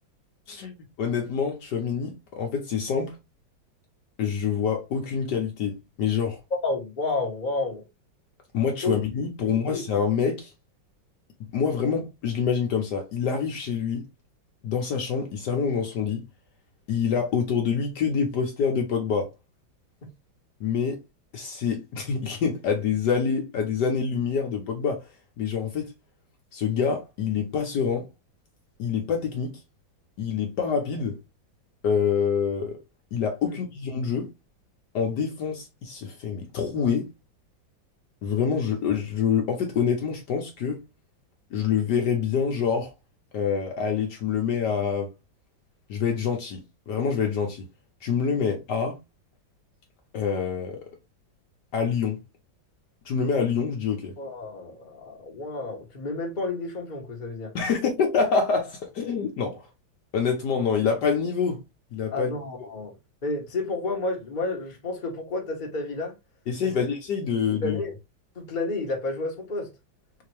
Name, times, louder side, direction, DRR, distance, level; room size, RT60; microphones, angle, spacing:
voice 1, 0.5-3.2 4.2-6.4 8.5-10.5 11.5-14.0 14.6-16.2 16.9-19.3 20.6-21.0 21.3-25.0 25.4-25.9 26.5-28.1 28.8-29.6 30.2-31.2 31.8-32.8 33.1-34.3 34.9-37.1 38.2-40.8 41.5-42.9 43.3-45.1 45.9-47.7 48.0-49.0 50.1-50.8 51.7-52.2 53.0-54.2 57.5-59.7 60.1-61.6 61.9-62.3 66.5-67.8, left 6 dB, 65° left, 1.3 m, -26 dB
voice 2, 6.6-7.8 8.8-8.9 9.4-9.8 33.5-33.6 54.2-57.5 62.1-62.9 63.2-66.1 66.6-66.7 67.3-67.9 68.3-69.7, left 2 dB, 30° left, 1.0 m, -31 dB
4.3 x 2.8 x 3.1 m
omnidirectional pair, 2.1 m